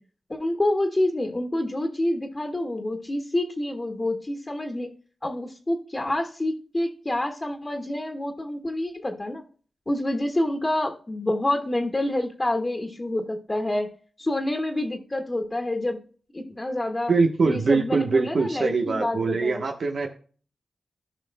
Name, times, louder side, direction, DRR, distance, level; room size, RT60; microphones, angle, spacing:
voice 1, 0.3-4.9 5.2-9.4 9.9-13.9 14.2-16.0 16.3-17.1 17.4-19.6, left 1 dB, 30° left, 3 dB, 1.8 m, -27 dB
voice 2, 17.1-20.1, right 4 dB, 70° right, 2 dB, 1.0 m, -23 dB
15.5 x 5.7 x 2.2 m, 0.41 s
cardioid pair, 45°, 0 cm